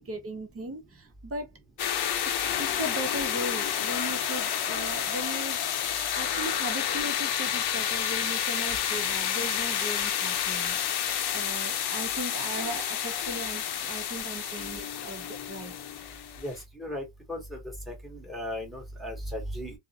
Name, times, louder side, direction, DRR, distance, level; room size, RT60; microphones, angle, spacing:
voice 1, 0.0-1.5 2.4-10.8 11.3-15.7, right 1 dB, 30° right, 0.7 m, -38 dB
sound 1, 1.8-16.6, left 9 dB, 55° left, 0.6 m, -30 dB
voice 2, 16.4-17.6 17.9-19.7, equal, ahead, 1.1 m, -36 dB
2.4 x 2.0 x 2.7 m
cardioid pair, 105°, 46 cm